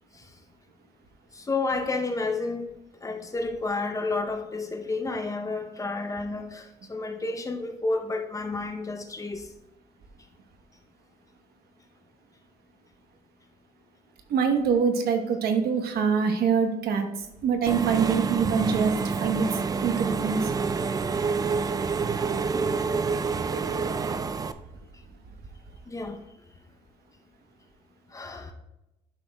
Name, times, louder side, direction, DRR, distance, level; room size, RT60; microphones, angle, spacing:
voice 1, 1.3-2.7 3.0-9.5 25.9-26.2 28.1-28.5, left 3 dB, 20° left, 5 dB, 0.7 m, -31 dB
voice 2, 14.3-18.9 19.2-20.5, right 6 dB, 65° right, 6 dB, 1.1 m, -25 dB
Engine / Mechanisms, 17.7-24.5, right 5 dB, 20° right, 0.3 m, -28 dB
11.5 x 6.1 x 2.3 m, 0.93 s
cardioid pair, 110°, 17 cm